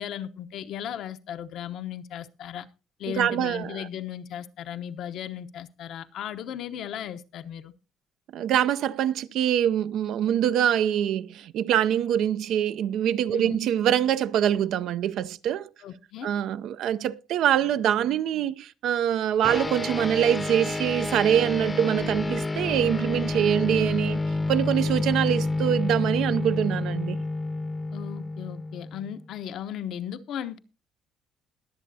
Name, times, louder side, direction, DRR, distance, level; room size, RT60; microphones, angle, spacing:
voice 1, 0.0-2.7 3.0-7.7 13.3-13.6 15.8-16.3 27.9-30.6, left 10 dB, 70° left, 0.9 m, -36 dB
voice 2, 3.2-3.9 8.3-15.7 16.2-24.2 24.5-27.2, right 10 dB, 75° right, 0.6 m, -24 dB
sound 1, 19.4-29.2, left 2 dB, 20° left, 0.7 m, -29 dB
21.5 x 7.5 x 2.7 m
cardioid pair, 110°, 0 cm